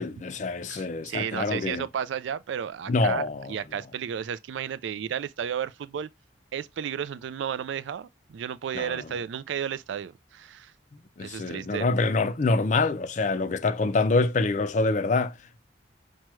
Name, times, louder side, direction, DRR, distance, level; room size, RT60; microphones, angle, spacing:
voice 1, 0.0-1.8 2.9-3.5 8.7-9.0 11.2-15.3, left 3 dB, 40° left, 0.4 m, -25 dB
voice 2, 0.7-6.1 6.5-10.7 11.2-11.9, right 8 dB, 75° right, 0.3 m, -33 dB
5.9 x 2.2 x 3.0 m
head